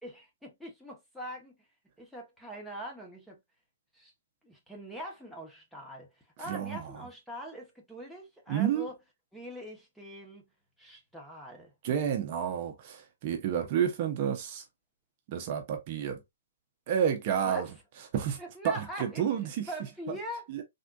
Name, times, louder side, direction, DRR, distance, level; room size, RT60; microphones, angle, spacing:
voice 1, 0.0-1.5 2.0-3.4 3.9-4.1 4.4-6.1 6.4-8.9 9.3-10.4 10.8-11.7 17.4-17.7 18.4-20.5, equal, ahead, 0.7 m, -42 dB
voice 2, 6.5-6.9 8.5-8.9 11.8-14.6 15.3-16.2 16.9-17.7 18.1-18.4 18.6-19.7 20.1-20.2 20.5-20.6, right 8 dB, 35° right, 0.6 m, -30 dB
3.5 x 2.5 x 2.2 m
hypercardioid pair, 155°, 0 cm